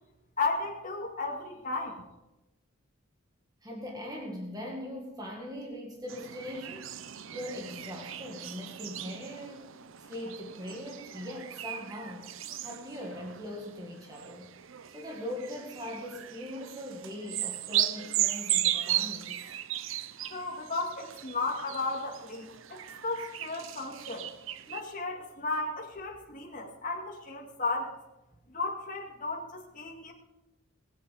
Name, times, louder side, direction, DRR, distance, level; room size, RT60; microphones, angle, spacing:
voice 1, 0.4-2.0 20.3-24.3 24.7-27.9 28.5-30.1, left 3 dB, 40° left, -2 dB, 2.3 m, -34 dB
voice 2, 3.6-6.9 7.3-12.3 12.6-14.5 14.9-19.5, left 1 dB, 20° right, 0 dB, 1.7 m, -41 dB
sound 1, 6.1-24.8, right 12 dB, 70° right, 0.6 m, -36 dB
20.0 x 8.4 x 5.0 m, 0.96 s
head